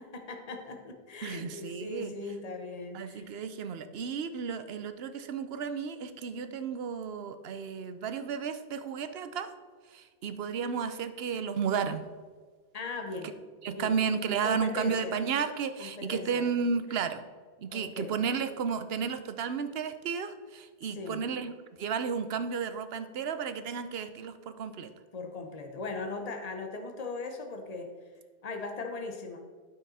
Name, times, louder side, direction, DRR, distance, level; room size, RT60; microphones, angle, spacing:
voice 1, 0.0-3.3 12.7-13.3 13.7-13.9 14.4-15.1 15.8-16.5 16.9-17.0 17.7-18.1 20.9-21.2 25.1-27.9 28.4-29.5, left 3 dB, 40° left, 4 dB, 1.1 m, -39 dB
voice 2, 1.2-2.1 2.9-9.5 9.9-12.0 13.2-13.3 13.6-17.2 17.6-21.5 21.8-24.9, right 6 dB, 70° right, 10 dB, 0.9 m, -33 dB
12.0 x 5.9 x 4.2 m, 1.5 s
omnidirectional pair, 1.1 m